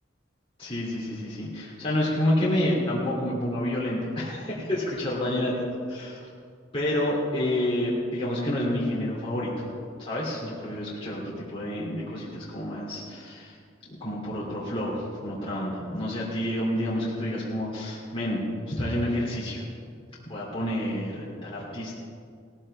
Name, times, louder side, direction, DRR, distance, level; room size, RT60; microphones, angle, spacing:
voice 1, 0.6-5.5 5.9-6.3 6.7-9.5 10.0-13.6 14.0-19.7 20.3-21.9, left 1 dB, 30° left, -7 dB, 2.5 m, -29 dB
18.5 x 14.0 x 3.3 m, 2.3 s
head